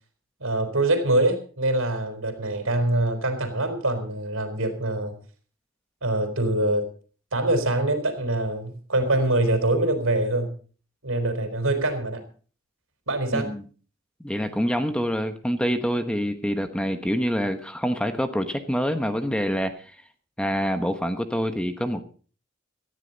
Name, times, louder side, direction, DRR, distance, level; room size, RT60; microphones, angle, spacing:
voice 1, 0.4-5.2 6.0-6.9 7.3-10.5 11.0-12.2 13.1-13.6, right 2 dB, 80° right, 7 dB, 4.1 m, -24 dB
voice 2, 13.3-13.6 14.2-19.9 20.4-22.0, equal, 5° left, 8 dB, 1.1 m, -26 dB
17.5 x 13.5 x 4.1 m, 0.40 s
head